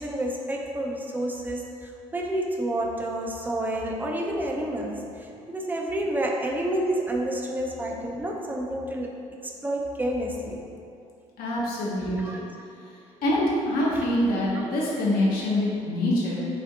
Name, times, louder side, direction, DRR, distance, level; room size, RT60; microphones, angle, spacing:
voice 1, 0.0-5.0 5.5-9.1 9.6-10.6 12.2-12.4 14.5-14.7, right 1 dB, 10° right, -1 dB, 0.4 m, -29 dB
voice 2, 11.4-12.5 13.2-16.4, left 1 dB, 60° left, -5 dB, 0.8 m, -25 dB
2.5 x 2.4 x 3.6 m, 2.5 s
hypercardioid pair, 50°, 17 cm